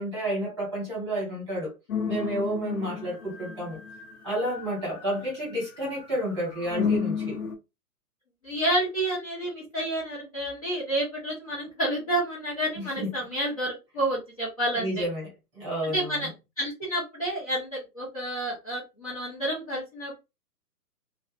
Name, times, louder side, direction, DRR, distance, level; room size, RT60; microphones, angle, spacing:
voice 1, 0.0-1.7 2.1-3.8 4.2-7.4 12.7-13.1 14.7-15.3 15.5-16.3, right 1 dB, 20° right, 1.2 m, -30 dB
sound 1, 1.9-5.4 5.8-7.5, left 6 dB, 60° left, 0.9 m, -32 dB
voice 2, 8.4-15.0 15.8-16.3 16.6-20.1, right 1 dB, 25° left, 0.8 m, -29 dB
2.5 x 2.3 x 2.4 m
hypercardioid pair, 180°, 47 cm